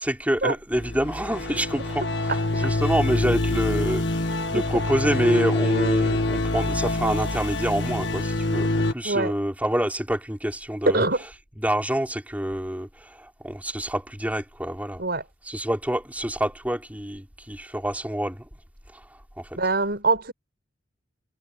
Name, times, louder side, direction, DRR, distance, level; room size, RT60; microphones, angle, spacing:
voice 1, 0.0-11.1 11.6-15.0 15.4-18.5 18.9-19.6, right 1 dB, 10° right, 3.3 m, -27 dB
sound 1, 0.7-8.9, left 2 dB, 70° left, 1.6 m, -25 dB
voice 2, 9.0-9.4 10.9-11.2 15.0-15.2 19.6-20.3, right 3 dB, 60° right, 6.0 m, -24 dB
head